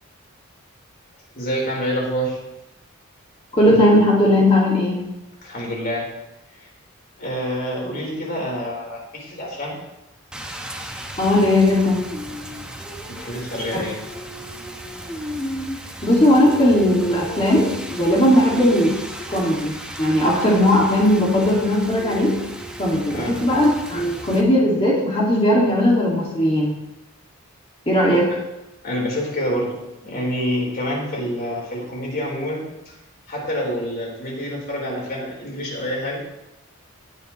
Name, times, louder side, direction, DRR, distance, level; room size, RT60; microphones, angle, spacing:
voice 1, 1.3-2.4 5.4-6.1 7.2-9.8 13.1-14.0 23.1-23.4 28.8-29.8 30.0-32.9 33.3-36.2, equal, 45° left, -2 dB, 4.2 m, -27 dB
voice 2, 3.6-5.0 11.2-12.0 16.0-18.9 19.3-22.4 22.8-26.8 27.9-28.3, left 1 dB, 25° left, -4 dB, 2.3 m, -17 dB
Rain, 10.3-24.4, equal, 5° right, 1.2 m, -34 dB
18.0 x 9.7 x 3.2 m, 0.91 s
head